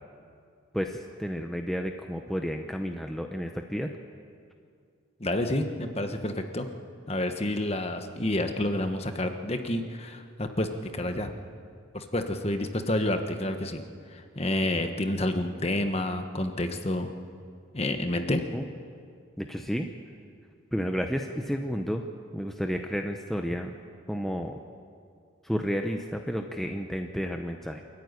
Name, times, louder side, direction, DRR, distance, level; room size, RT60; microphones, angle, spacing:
voice 1, 0.7-3.9 18.5-18.6 19.4-19.9 20.7-22.0 22.3-23.7 24.1-24.6 25.4-27.8, equal, ahead, 3 dB, 0.8 m, -31 dB
voice 2, 5.2-6.7 7.1-11.3 11.9-13.8 14.1-17.1 17.7-18.4, left 1 dB, 30° left, 6 dB, 1.4 m, -29 dB
26.5 x 14.5 x 9.8 m, 2.3 s
head